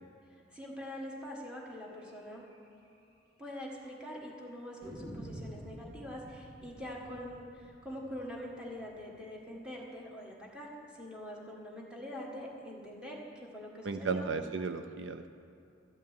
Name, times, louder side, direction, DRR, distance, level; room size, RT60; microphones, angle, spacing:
voice 1, 0.5-2.4 3.4-14.3, equal, 5° right, -4 dB, 1.8 m, -44 dB
sound 1, 2.0-2.1 2.5-2.6 2.8-2.9 3.6-4.1 4.8-9.6, right 1 dB, 55° right, 2.8 m, -49 dB
voice 2, 13.8-15.3, right 4 dB, 75° right, 8 dB, 0.5 m, -34 dB
13.0 x 5.7 x 9.0 m, 2.6 s
head